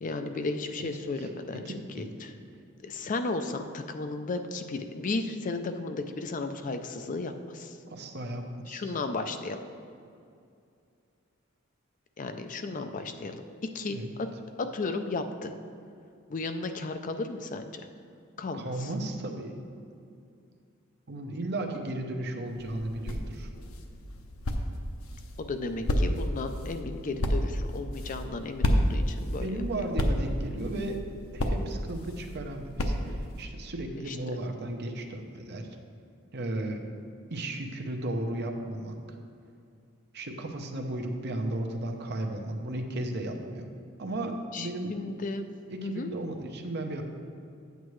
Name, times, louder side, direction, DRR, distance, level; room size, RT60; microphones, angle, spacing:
voice 1, 0.0-1.6 1.9-2.3 2.8-7.8 8.7-9.6 12.2-14.3 14.6-15.5 16.3-17.8 18.4-18.9 25.4-29.6 33.9-34.4 44.5-45.5 45.8-46.1, left 3 dB, 40° left, 8 dB, 0.4 m, -34 dB
voice 2, 1.2-2.2 7.9-8.8 13.9-14.1 18.5-19.5 21.1-23.5 29.3-31.0 31.3-35.7 36.3-36.8 37.3-39.0 40.1-43.6 44.0-44.9 45.7-47.0, right 1 dB, 55° right, 4 dB, 0.8 m, -35 dB
sound 1, 22.5-33.4, equal, 85° left, 0.7 m, -31 dB
9.5 x 8.1 x 3.1 m, 2.4 s
head